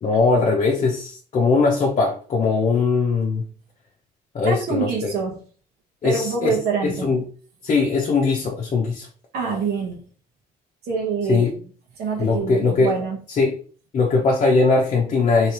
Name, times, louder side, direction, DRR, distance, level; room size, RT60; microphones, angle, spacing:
voice 1, 0.0-3.5 4.3-5.1 6.0-6.6 6.8-7.2 7.6-9.1 11.3-11.5 12.2-12.9 13.3-13.5 13.9-15.5, left 4 dB, 40° left, -1 dB, 0.8 m, -20 dB
voice 2, 4.4-5.4 6.0-7.1 9.3-10.0 10.8-11.7 12.0-13.2, right 5 dB, 70° right, 0 dB, 1.2 m, -26 dB
3.2 x 3.1 x 2.9 m, 0.41 s
cardioid pair, 110°, 17 cm